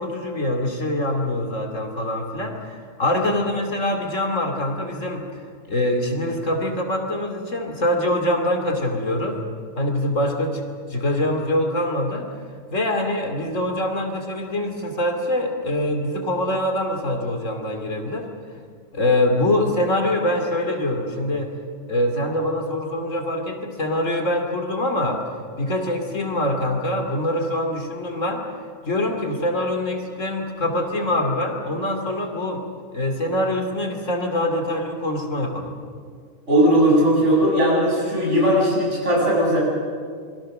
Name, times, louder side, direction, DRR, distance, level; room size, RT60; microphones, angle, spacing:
voice 1, 0.0-5.4 5.7-9.4 9.8-10.6 10.9-12.3 12.7-18.3 18.9-21.5 21.9-25.2 25.6-28.5 28.9-32.6 32.9-35.7, left 1 dB, 65° left, 4 dB, 3.0 m, -24 dB
voice 2, 36.5-39.6, equal, 60° right, -3 dB, 8.0 m, -18 dB
27.0 x 23.0 x 6.5 m, 2.1 s
omnidirectional pair, 1.4 m